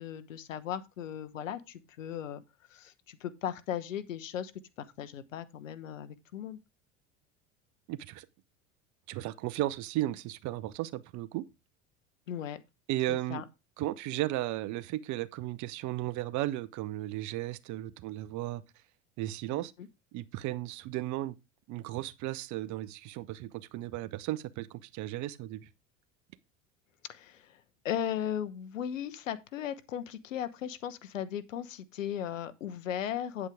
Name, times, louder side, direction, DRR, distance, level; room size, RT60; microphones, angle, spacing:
voice 1, 0.0-2.4 2.7-4.5 4.8-6.6 12.3-12.6 13.1-13.4 19.5-19.9 27.1-33.5, left 10 dB, 85° left, 1.1 m, -37 dB
voice 2, 7.9-8.3 9.1-11.5 12.9-13.4 13.8-18.6 19.2-19.7 20.1-21.4 21.7-25.7, right 15 dB, 50° right, 0.8 m, -35 dB
9.1 x 8.2 x 3.5 m
hypercardioid pair, 80°, 38 cm